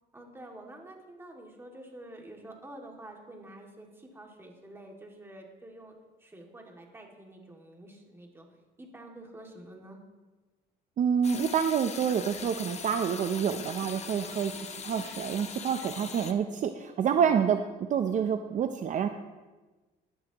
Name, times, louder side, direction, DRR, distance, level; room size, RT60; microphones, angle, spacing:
voice 1, 0.1-8.5 8.8-10.0 14.0-14.3 17.2-17.3, right 1 dB, 15° right, 0 dB, 2.3 m, -48 dB
voice 2, 11.0-17.6 17.9-19.1, right 7 dB, 50° right, 7 dB, 0.7 m, -28 dB
sound 1, 11.2-16.3, left 6 dB, 40° left, 1.0 m, -41 dB
17.5 x 11.0 x 3.0 m, 1.2 s
cardioid pair, 110°, 17 cm